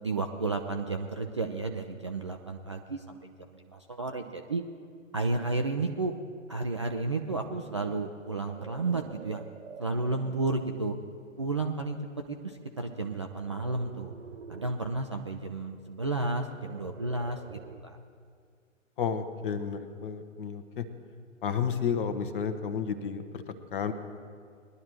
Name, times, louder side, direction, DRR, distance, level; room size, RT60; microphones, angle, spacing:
voice 1, 0.0-4.6 5.1-6.1 6.5-9.4 9.8-11.0 11.4-12.0 12.3-14.1 14.5-18.0, right 3 dB, 25° right, 3 dB, 0.3 m, -32 dB
sound 1, 7.0-10.7 11.3-11.6 13.3-14.9 16.5-18.0, right 6 dB, 60° right, 0.9 m, -48 dB
voice 2, 19.0-20.8 21.4-23.9, left 7 dB, 40° left, 8 dB, 1.1 m, -32 dB
21.0 x 11.5 x 3.0 m, 2.1 s
figure-of-eight pair, 120°, 39 cm